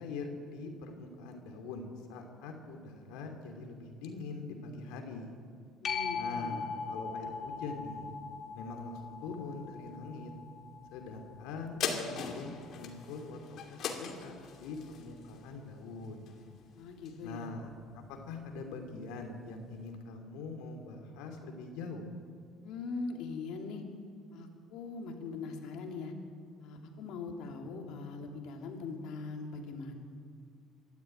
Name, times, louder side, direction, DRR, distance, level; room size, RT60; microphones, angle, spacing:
voice 1, 0.0-5.3 6.1-8.1 8.5-10.3 10.9-16.3 17.2-22.1, left 3 dB, 90° left, 3 dB, 2.8 m, -43 dB
voice 2, 5.8-6.6 16.7-17.5 22.6-23.8 24.3-26.1 26.6-29.9, left 4 dB, 70° left, 2 dB, 3.0 m, -41 dB
sound 1, 5.8-13.0 18.5-18.6, left 5 dB, 40° left, 2.5 m, -41 dB
sound 2, 11.8-16.6 17.0-17.1, left 6 dB, 55° left, 2.6 m, -39 dB
24.5 x 12.5 x 9.1 m, 2.2 s
cardioid pair, 130°, 0 cm